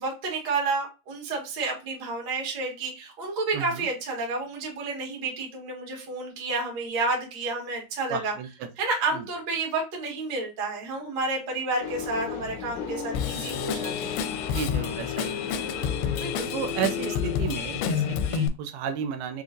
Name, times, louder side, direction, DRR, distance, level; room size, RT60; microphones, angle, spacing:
voice 1, 0.0-8.3 8.8-14.2 16.2-16.5, right 3 dB, 45° right, -1 dB, 1.4 m, -30 dB
voice 2, 3.5-3.9 8.1-8.7 9.1-9.3 14.5-16.0 16.5-19.4, right 7 dB, 85° right, 8 dB, 2.5 m, -33 dB
sound 1, 11.8-18.3, left 6 dB, 65° left, 2.0 m, -35 dB
Drum kit / Drum, 13.1-18.5, left 8 dB, 85° left, 2.5 m, -30 dB
6.7 x 2.4 x 2.5 m, 0.28 s
omnidirectional pair, 4.4 m